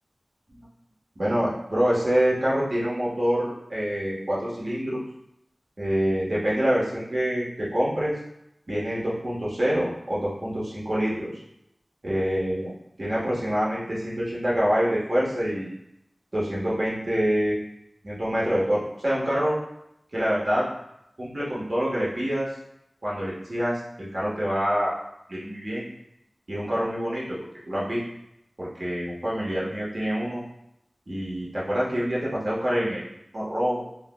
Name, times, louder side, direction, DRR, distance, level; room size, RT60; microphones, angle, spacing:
voice 1, 1.2-5.0 5.8-8.1 8.7-11.3 12.0-12.7 13.0-15.7 16.3-17.6 18.0-19.6 20.1-20.6 21.2-22.5 23.0-24.9 25.3-25.8 26.5-27.4 27.7-28.0 28.6-30.4 31.1-33.8, equal, 55° right, -6 dB, 1.1 m, -26 dB
4.7 x 2.2 x 2.2 m, 0.80 s
wide cardioid pair, 55°, 0 cm